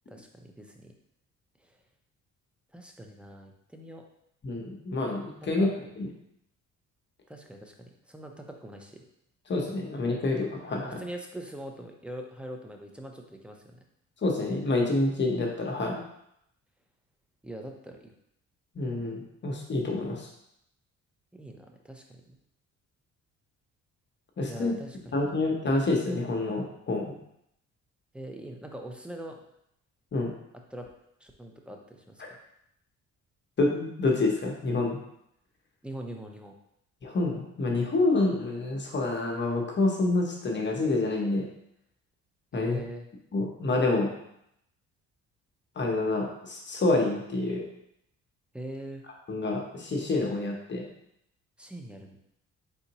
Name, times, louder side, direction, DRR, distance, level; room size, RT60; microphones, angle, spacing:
voice 1, 0.1-0.9 2.7-4.0 5.4-5.7 7.3-7.7 8.1-9.0 10.8-13.6 17.4-18.1 21.3-22.0 24.5-25.2 28.1-29.4 30.7-30.9 31.2-32.2 35.8-36.5 42.5-43.1 48.5-49.0 51.6-52.2, right 1 dB, 5° right, 3 dB, 0.6 m, -42 dB
voice 2, 4.4-5.7 6.0-6.1 9.5-11.0 14.2-16.0 18.7-20.3 24.4-24.8 25.1-27.1 30.1-30.3 33.6-35.0 37.0-41.5 42.5-42.8 43.3-44.1 45.8-47.6 49.3-50.9, left 2 dB, 35° left, 0 dB, 0.9 m, -27 dB
4.1 x 3.8 x 2.9 m, 0.76 s
cardioid pair, 90°, 30 cm